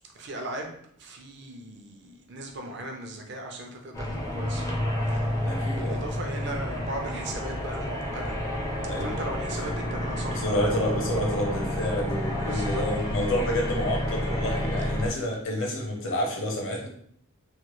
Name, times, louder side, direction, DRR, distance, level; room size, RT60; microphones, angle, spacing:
voice 1, 0.1-4.7 5.0-5.3 5.6-8.4 9.0-10.4 12.4-12.9, right 1 dB, 50° right, 2 dB, 0.5 m, -38 dB
sound 1, 3.9-15.1, left 1 dB, 15° left, 0.4 m, -30 dB
voice 2, 5.4-6.0 8.9-9.2 10.3-16.9, left 1 dB, 60° left, 0 dB, 0.7 m, -29 dB
3.1 x 2.2 x 3.0 m, 0.65 s
head